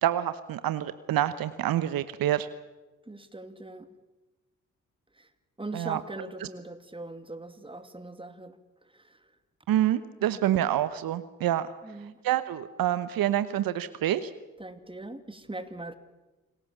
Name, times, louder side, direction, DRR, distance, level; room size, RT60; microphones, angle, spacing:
voice 1, 0.0-2.5 5.7-6.0 9.7-11.7 12.2-14.3, right 12 dB, 70° right, 13 dB, 1.0 m, -27 dB
voice 2, 3.1-3.9 5.1-5.3 5.6-9.3 10.2-10.4 11.8-12.2 14.6-16.0, right 2 dB, 15° right, 9 dB, 2.6 m, -41 dB
28.0 x 18.5 x 7.4 m, 1.1 s
hypercardioid pair, 45°, 37 cm